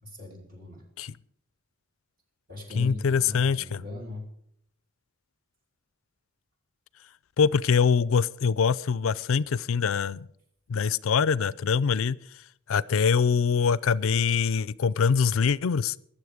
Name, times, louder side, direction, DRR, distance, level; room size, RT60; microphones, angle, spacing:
voice 1, 0.0-0.8 2.5-4.3, left 2 dB, 45° right, 0 dB, 2.9 m, -39 dB
voice 2, 2.8-3.8 7.4-10.3 10.7-12.2 12.7-15.9, left 6 dB, 80° left, 20 dB, 0.4 m, -24 dB
21.5 x 7.5 x 5.0 m, 0.70 s
head